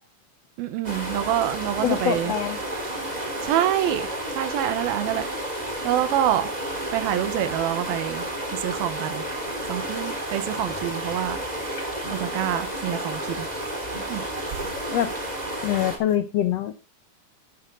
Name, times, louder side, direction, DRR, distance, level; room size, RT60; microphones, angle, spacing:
voice 1, 0.6-2.3 3.4-5.3 5.8-6.5 6.9-11.4 12.1-13.5 14.1-14.7, right 11 dB, 85° right, 3.0 m, -27 dB
sound 1, 0.8-16.0, right 1 dB, 10° right, 3.4 m, -31 dB
voice 2, 1.8-2.6 11.8-11.9 14.9-15.1 15.6-16.7, left 11 dB, 70° left, 1.5 m, -24 dB
12.0 x 11.0 x 3.9 m
omnidirectional pair, 4.1 m